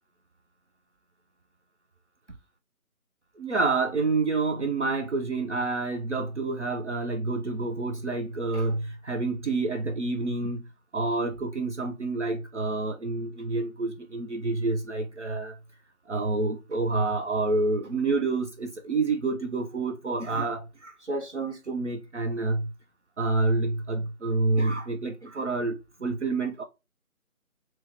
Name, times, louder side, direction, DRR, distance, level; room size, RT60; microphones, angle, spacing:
voice 1, 3.4-10.6 10.9-15.6 16.1-22.7 23.2-26.6, right 3 dB, 55° right, 0.6 m, -28 dB
2.9 x 2.9 x 3.3 m
figure-of-eight pair, 160°, 43 cm